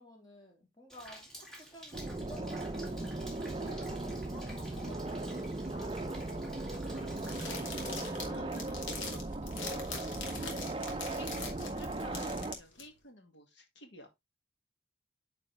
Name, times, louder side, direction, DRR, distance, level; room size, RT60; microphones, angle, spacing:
voice 1, 0.0-3.2 3.6-5.3, equal, 20° left, 3.4 m, -53 dB
Rain, 0.9-7.6, equal, ahead, 2.1 m, -51 dB
sound 1, 1.9-12.6, right 2 dB, 25° right, 0.5 m, -37 dB
voice 2, 5.7-7.1 7.4-10.6 10.9-14.1, left 1 dB, 70° left, 2.2 m, -52 dB
sound 2, 7.2-12.8, left 5 dB, 85° left, 2.5 m, -43 dB
9.3 x 4.8 x 3.3 m
head